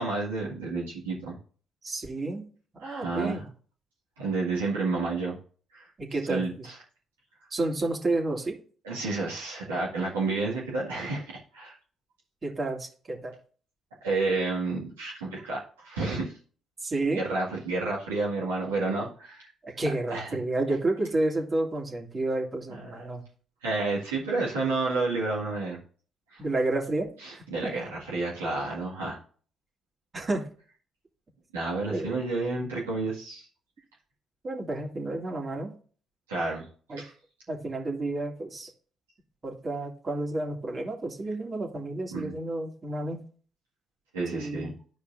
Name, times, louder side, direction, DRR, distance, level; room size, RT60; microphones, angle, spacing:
voice 1, 0.0-1.4 2.8-3.4 4.2-5.4 5.7-5.9 6.3-6.8 8.8-11.8 14.0-16.3 17.1-19.5 20.1-20.3 22.9-23.1 23.6-25.8 26.3-26.4 27.2-29.2 31.5-33.5 36.3-36.7 37.0-37.1 42.1-42.3 44.1-44.7, right 3 dB, 90° right, -7 dB, 2.0 m, -30 dB
voice 2, 1.8-2.5 2.7-3.5 6.0-6.7 7.5-8.6 12.4-13.3 16.8-17.2 19.6-23.2 26.4-27.7 30.1-30.5 31.9-32.2 34.4-35.7 36.9-37.0 37.5-38.7 39.4-43.2 44.3-44.7, right 2 dB, 40° right, 0 dB, 2.4 m, -30 dB
12.5 x 4.9 x 2.7 m, 0.42 s
hypercardioid pair, 45°, 0 cm